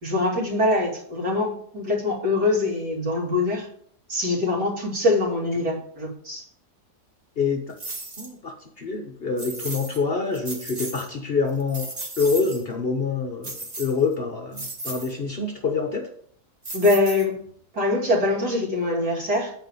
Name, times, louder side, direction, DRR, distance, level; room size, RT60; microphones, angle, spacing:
voice 1, 0.0-3.7 4.1-6.4 16.7-17.4 17.7-19.5, left 2 dB, 75° right, -4 dB, 2.9 m, -23 dB
sound 1, 7.8-8.3 9.4-10.0 10.3-11.1 11.5-12.6 13.4-14.1 14.5-15.1 16.6-17.5, right 2 dB, 25° right, 1.2 m, -35 dB
voice 2, 8.2-11.9 12.2-16.0, left 4 dB, 45° left, 3 dB, 0.9 m, -26 dB
7.8 x 4.7 x 5.4 m, 0.62 s
omnidirectional pair, 1.7 m